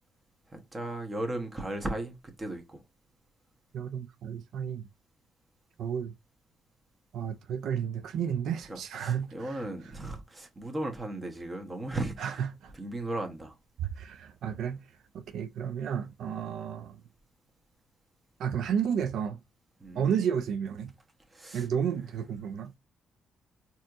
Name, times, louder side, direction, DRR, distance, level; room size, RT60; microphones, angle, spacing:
voice 1, 0.5-2.8 8.7-12.5 12.7-13.6 19.8-20.1 21.3-21.7 22.0-22.1, right 1 dB, 25° right, 1.2 m, -36 dB
voice 2, 3.7-4.9 5.8-6.2 7.1-9.6 12.2-12.7 14.0-14.8 15.1-17.0 18.4-19.4 20.0-20.9 21.5-22.7, right 8 dB, 75° right, 0.3 m, -32 dB
4.3 x 2.9 x 2.5 m
cardioid pair, 90°, 0 cm